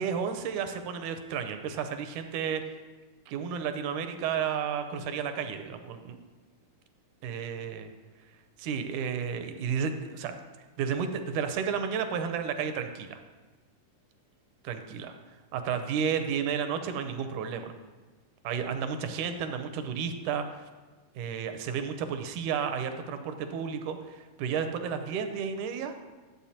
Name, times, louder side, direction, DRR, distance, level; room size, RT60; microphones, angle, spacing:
voice 1, 0.0-2.6 3.3-6.2 7.2-7.9 8.6-10.3 10.8-13.2 14.6-15.1 15.5-17.7 18.4-20.4 21.2-25.9, right 7 dB, 80° right, 8 dB, 2.0 m, -32 dB
11.5 x 7.7 x 2.8 m, 1.3 s
omnidirectional pair, 3.7 m